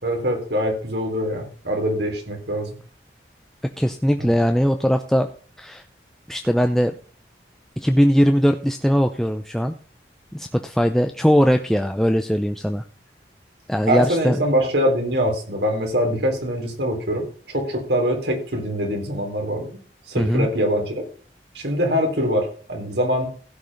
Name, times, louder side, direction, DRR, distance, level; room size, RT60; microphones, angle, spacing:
voice 1, 0.0-2.7 4.2-4.3 13.9-19.7 20.1-21.0 21.5-23.3, equal, 75° right, 2 dB, 3.8 m, -23 dB
voice 2, 3.8-5.3 5.6-5.8 6.3-6.9 7.8-9.7 10.3-12.8 13.7-14.4 20.2-20.5, equal, ahead, 5 dB, 0.6 m, -20 dB
16.0 x 5.5 x 5.5 m, 0.41 s
head